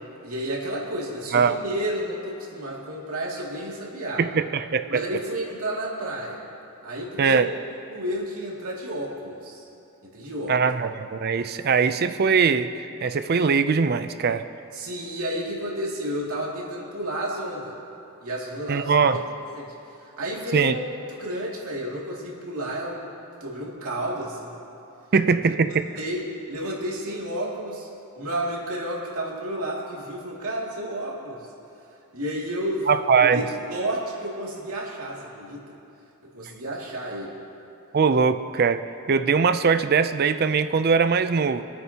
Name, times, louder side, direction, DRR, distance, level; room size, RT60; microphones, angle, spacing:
voice 1, 0.2-4.2 4.9-6.4 6.8-7.4 7.9-9.6 10.0-10.5 14.7-17.8 18.2-18.9 19.6-20.8 21.2-23.1 23.4-24.5 25.4-27.9 28.2-31.5 32.1-32.9 33.2-35.6 36.3-37.4, right 1 dB, 75° right, -4 dB, 2.4 m, -31 dB
voice 2, 4.2-5.0 7.2-7.5 10.5-12.7 13.0-14.5 18.7-19.2 20.5-20.7 25.1-25.9 32.9-33.4 37.9-41.6, right 5 dB, 45° right, 11 dB, 0.4 m, -21 dB
25.0 x 8.9 x 2.9 m, 2.7 s
head